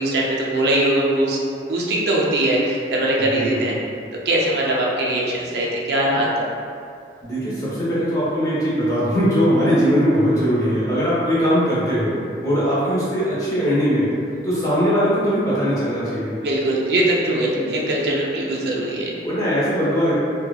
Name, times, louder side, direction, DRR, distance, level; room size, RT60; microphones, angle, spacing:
voice 1, 0.0-1.4 1.6-3.7 4.1-6.5 16.4-19.1, right 1 dB, 65° right, -3 dB, 0.4 m, -21 dB
voice 2, 3.3-3.7 7.2-12.2 12.4-14.1 14.4-16.3 19.2-20.2, equal, 20° left, -10 dB, 0.7 m, -20 dB
2.7 x 2.2 x 2.3 m, 2.4 s
head